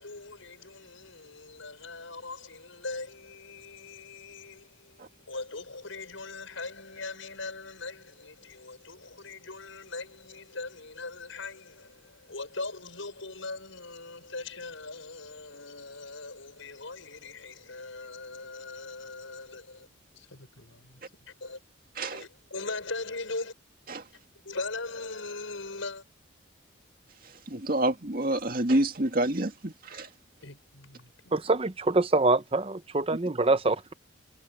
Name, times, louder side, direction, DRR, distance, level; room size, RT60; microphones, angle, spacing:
voice 1, 0.0-19.9 20.1-21.0 21.4-21.6 22.1-23.5 24.4-26.0 30.4-31.3, left 3 dB, 80° left, 6.0 m, -40 dB
voice 2, 27.2-30.1, right 1 dB, 45° right, 2.2 m, -28 dB
voice 3, 31.3-33.9, right 2 dB, 30° right, 0.7 m, -25 dB
head